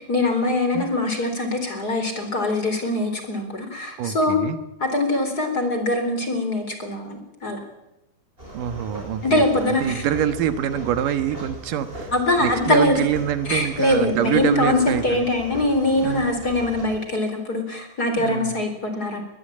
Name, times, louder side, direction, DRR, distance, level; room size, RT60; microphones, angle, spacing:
voice 1, 0.1-4.4 4.8-7.6 9.2-10.0 12.1-13.0 13.5-19.2, left 2 dB, 30° left, 6 dB, 4.3 m, -23 dB
voice 2, 4.0-4.6 8.5-9.5 9.8-15.3 16.0-16.3 18.2-18.5, right 10 dB, 85° right, 10 dB, 2.9 m, -25 dB
sound 1, 8.4-17.0, equal, 15° right, 7.1 m, -39 dB
22.5 x 20.0 x 8.8 m, 0.90 s
omnidirectional pair, 3.7 m